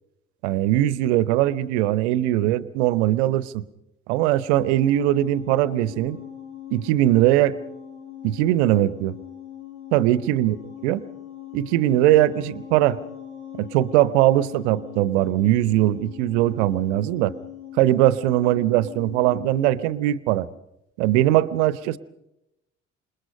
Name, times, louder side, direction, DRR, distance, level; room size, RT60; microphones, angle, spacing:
voice 1, 0.4-3.6 4.1-6.2 6.7-7.6 8.2-9.2 9.9-10.6 10.8-11.0 11.5-13.0 13.6-17.3 17.8-20.5 21.0-22.0, right 14 dB, 65° right, 18 dB, 0.8 m, -20 dB
sound 1, 4.6-19.9, left 11 dB, 75° left, 2.5 m, -40 dB
27.0 x 21.0 x 5.4 m, 0.88 s
figure-of-eight pair, 50°, 36 cm